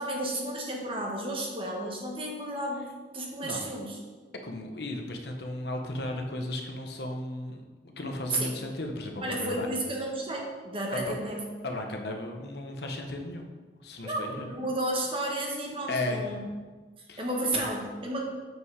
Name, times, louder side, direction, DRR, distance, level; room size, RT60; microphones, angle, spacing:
voice 1, 0.0-4.0 8.3-8.5 9.2-11.4 14.0-16.4 17.2-18.2, right 1 dB, 30° right, 0 dB, 1.4 m, -32 dB
voice 2, 4.4-9.7 11.6-13.4 13.8-14.5 15.9-16.3 17.1-17.3 17.5-17.6, left 1 dB, 65° left, 3 dB, 0.9 m, -35 dB
7.7 x 5.6 x 4.8 m, 1.4 s
head